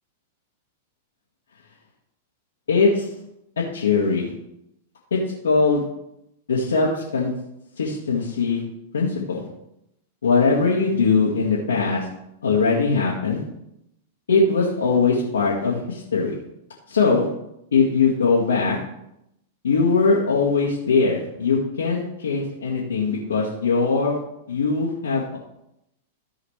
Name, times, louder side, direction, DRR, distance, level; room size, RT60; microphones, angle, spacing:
voice 1, 2.7-3.1 3.7-4.3 5.1-5.2 5.4-5.8 6.5-7.3 7.8-8.6 8.9-9.4 10.2-12.1 12.4-13.4 14.3-16.3 16.9-17.3 17.7-18.8 19.6-24.2 24.5-25.4, left 4 dB, 80° left, -5 dB, 1.9 m, -21 dB
14.5 x 4.9 x 3.4 m, 0.81 s
hypercardioid pair, 105°, 0 cm